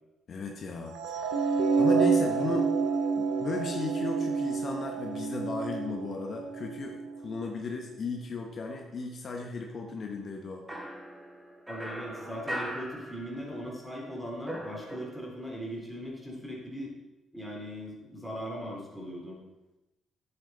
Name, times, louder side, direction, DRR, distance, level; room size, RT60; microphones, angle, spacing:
voice 1, 0.3-2.7 3.2-10.6, left 4 dB, 50° left, 2 dB, 1.2 m, -36 dB
sound 1, 0.9-7.2, right 5 dB, 90° right, 1.0 m, -28 dB
sound 2, 10.7-13.7 14.0-15.5, equal, 20° right, 2.9 m, -40 dB
voice 2, 11.7-16.9 17.3-19.4, equal, ahead, -2 dB, 3.4 m, -39 dB
9.9 x 8.1 x 4.1 m, 0.98 s
cardioid pair, 90°, 0 cm